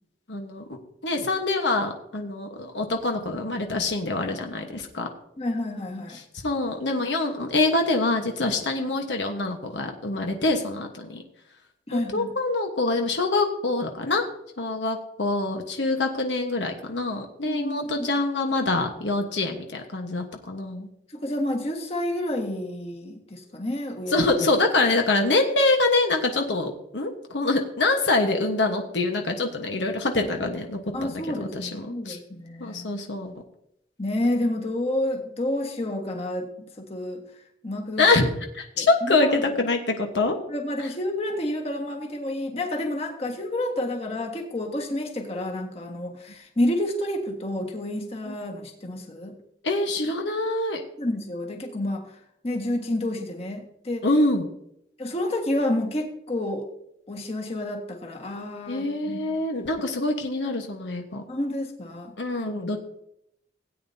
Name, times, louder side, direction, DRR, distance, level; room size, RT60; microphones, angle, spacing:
voice 1, 0.3-0.8 1.0-5.1 6.4-11.2 11.9-14.2 14.6-20.9 24.1-32.2 32.6-33.3 38.0-40.4 40.8-40.9 48.3-48.4 49.6-50.8 54.0-54.5 58.7-61.2 62.2-62.8, left 2 dB, 85° left, 4 dB, 1.3 m, -25 dB
voice 2, 5.4-6.2 11.9-12.3 17.5-18.1 21.1-24.2 30.9-33.0 34.0-37.2 37.6-38.1 38.8-39.3 40.5-49.3 51.0-52.1 52.4-54.1 55.0-56.7 57.1-59.3 61.3-62.1, left 1 dB, 35° left, 1 dB, 1.6 m, -29 dB
17.0 x 9.0 x 2.8 m, 0.76 s
head